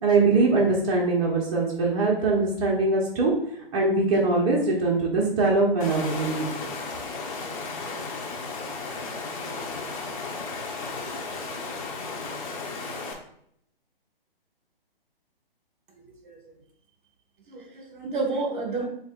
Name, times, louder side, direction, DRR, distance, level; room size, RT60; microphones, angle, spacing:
voice 1, 0.0-3.3 3.7-6.5, right 3 dB, 35° right, -4 dB, 0.9 m, -22 dB
Water, 5.8-13.1, left 3 dB, 35° left, 0.9 m, -34 dB
voice 2, 16.0-16.4 17.5-18.9, right 3 dB, 55° right, 3 dB, 1.3 m, -30 dB
7.7 x 2.9 x 2.4 m, 0.69 s
figure-of-eight pair, 140°, 30 cm